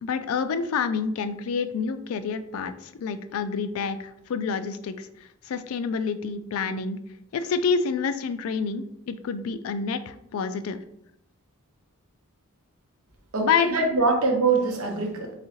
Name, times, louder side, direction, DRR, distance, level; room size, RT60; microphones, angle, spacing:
voice 1, 0.0-5.1 5.5-7.0 7.3-10.8 13.4-13.7 14.0-14.1, left 5 dB, 70° left, 11 dB, 0.3 m, -28 dB
voice 2, 13.3-15.3, right 3 dB, 70° right, 2 dB, 0.9 m, -23 dB
4.1 x 3.6 x 2.8 m, 0.76 s
head